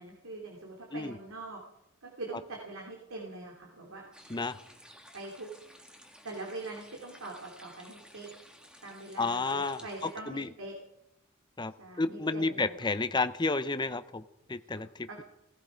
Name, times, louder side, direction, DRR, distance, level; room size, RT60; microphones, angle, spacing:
voice 1, 0.0-1.6 2.0-4.3 5.1-5.5 6.2-8.4 8.8-10.8 11.8-12.7 14.8-15.2, right 2 dB, 85° right, 0 dB, 2.8 m, -43 dB
sound 1, 4.1-10.2, equal, 5° right, 1.5 m, -55 dB
voice 2, 9.2-10.5 11.6-15.1, left 3 dB, 20° left, 11 dB, 0.6 m, -31 dB
17.5 x 16.0 x 5.1 m, 0.85 s
head